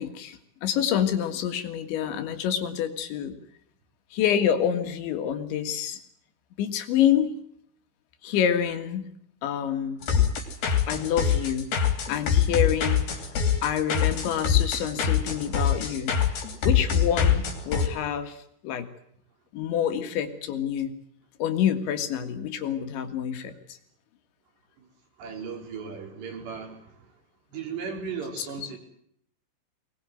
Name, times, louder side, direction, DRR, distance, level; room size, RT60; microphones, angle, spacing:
voice 1, 0.0-3.4 4.1-6.0 6.6-7.3 8.2-9.1 9.4-10.0 10.9-11.7 12.1-13.1 13.6-16.2 16.6-18.9 19.5-20.9 21.4-23.8, left 9 dB, 75° left, 8 dB, 4.1 m, -27 dB
sound 1, 10.0-17.9, left 7 dB, 55° left, 4.8 m, -24 dB
voice 2, 24.8-27.2 27.5-28.8, right 5 dB, 65° right, 3 dB, 6.4 m, -37 dB
24.0 x 21.0 x 7.8 m, 0.69 s
omnidirectional pair, 5.5 m